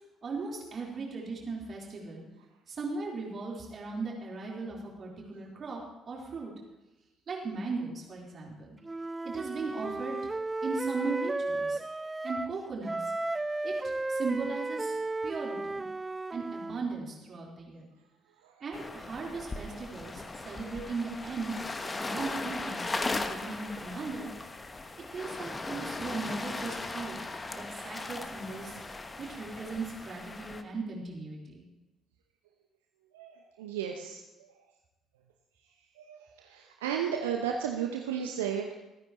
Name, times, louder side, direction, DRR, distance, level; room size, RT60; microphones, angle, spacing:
voice 1, 0.2-2.2 2.7-5.8 6.1-6.5 7.3-8.7 9.2-10.3 10.6-11.8 12.2-13.1 13.6-15.8 16.3-17.9 18.6-21.5 21.8-24.3 25.1-27.2 27.5-28.8 29.2-31.6, right 4 dB, 45° right, -3 dB, 4.0 m, -37 dB
Wind instrument woodwind instrument, 8.8-12.6 12.8-16.8, right 2 dB, 20° right, 0.4 m, -34 dB
sound 1, 18.7-30.6, left 3 dB, 25° left, 1.1 m, -38 dB
voice 2, 33.1-34.5 36.0-38.7, right 8 dB, 75° right, 2 dB, 0.8 m, -34 dB
26.5 x 9.7 x 3.1 m, 1.0 s
figure-of-eight pair, 45°, 0 cm